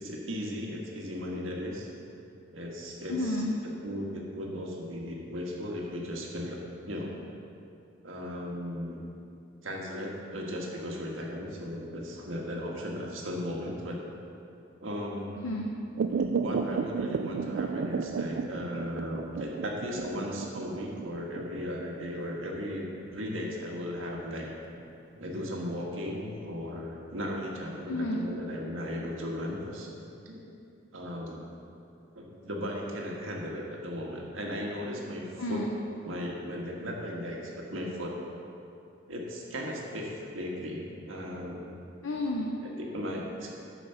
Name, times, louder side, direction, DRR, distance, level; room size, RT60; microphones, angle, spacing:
voice 1, 0.0-1.9 2.5-3.4 3.8-6.6 6.9-7.1 8.0-9.0 9.6-14.0 14.8-15.4 16.4-22.8 23.1-24.5 25.1-29.9 30.2-30.4 30.9-31.5 32.1-35.2 35.5-35.6 36.1-38.2 39.1-41.7 42.6-43.5, equal, 80° right, -2 dB, 1.6 m, -36 dB
voice 2, 3.1-3.6 15.3-15.9 27.9-28.3 35.4-35.7 42.0-42.6, left 1 dB, 80° left, 0 dB, 0.7 m, -31 dB
sound 1, 16.0-24.8 25.2-25.3, right 5 dB, 60° right, 0.3 m, -33 dB
9.3 x 5.8 x 6.7 m, 2.6 s
head